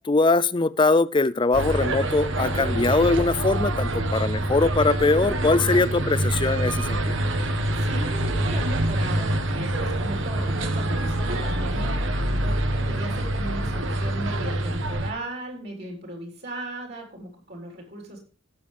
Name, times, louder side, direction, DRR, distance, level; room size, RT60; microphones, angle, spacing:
voice 1, 0.0-7.2, left 3 dB, 25° left, 0.4 m, -22 dB
sound 1, 1.5-15.1, right 1 dB, 65° right, 1.3 m, -26 dB
voice 2, 7.5-18.3, right 1 dB, 50° right, 3.9 m, -37 dB
16.0 x 7.0 x 3.3 m
head